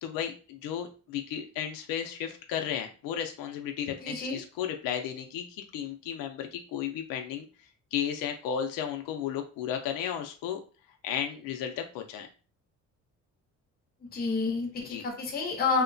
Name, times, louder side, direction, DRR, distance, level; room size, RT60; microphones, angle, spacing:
voice 1, 0.0-7.5 7.9-10.6 11.0-12.3 14.8-15.0, left 9 dB, 85° left, 4 dB, 0.5 m, -34 dB
voice 2, 4.0-4.4 14.1-15.8, left 4 dB, 30° left, 0 dB, 0.7 m, -29 dB
2.9 x 2.1 x 2.6 m, 0.36 s
cardioid pair, 165°, 33 cm